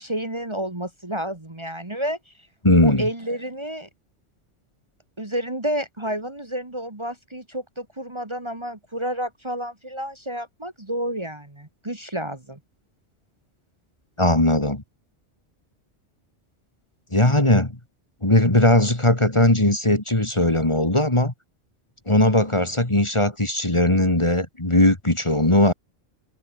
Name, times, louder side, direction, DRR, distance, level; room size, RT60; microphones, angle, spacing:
voice 1, 0.0-2.3 2.8-3.9 5.2-12.6, right 1 dB, 25° right, 2.2 m, -30 dB
voice 2, 2.6-3.1 14.2-14.8 17.1-17.7 18.2-21.3 22.1-25.7, left 1 dB, 25° left, 2.7 m, -19 dB
omnidirectional pair, 1.2 m